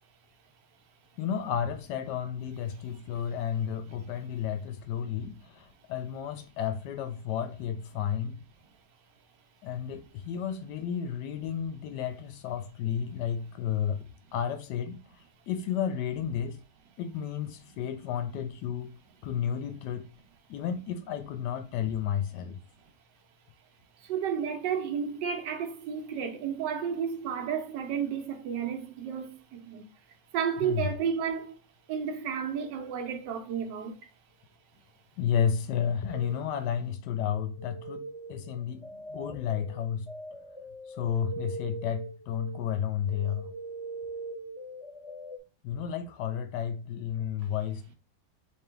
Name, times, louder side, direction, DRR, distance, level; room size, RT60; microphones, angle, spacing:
voice 1, 1.2-8.4 9.6-16.6 17.0-19.0 19.2-20.1 20.5-22.6 30.6-30.9 35.2-40.1 40.9-43.5 45.6-47.9, left 8 dB, 75° left, 1.1 m, -32 dB
voice 2, 24.0-29.9 30.3-31.5 31.9-33.9, right 7 dB, 75° right, 1.4 m, -32 dB
sound 1, 36.1-36.8 37.3-45.4, right 2 dB, 45° left, 1.1 m, -42 dB
3.5 x 3.0 x 3.3 m
omnidirectional pair, 2.0 m